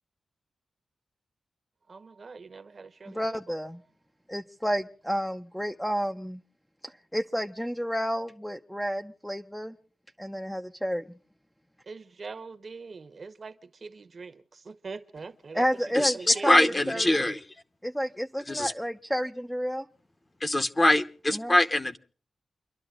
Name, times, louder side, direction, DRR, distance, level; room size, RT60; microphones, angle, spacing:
voice 1, 1.9-3.5 11.9-15.6 16.0-17.4, right 4 dB, 45° right, 0.9 m, -43 dB
voice 2, 3.1-3.8 4.3-6.4 6.8-9.7 10.2-11.0 15.5-16.5 16.9-17.2 17.8-19.8 21.3-21.6, equal, 5° left, 0.5 m, -30 dB
voice 3, 16.0-17.4 18.5-18.7 20.4-22.0, left 1 dB, 25° left, 0.8 m, -23 dB
29.5 x 12.0 x 2.4 m
wide cardioid pair, 125°, 0 cm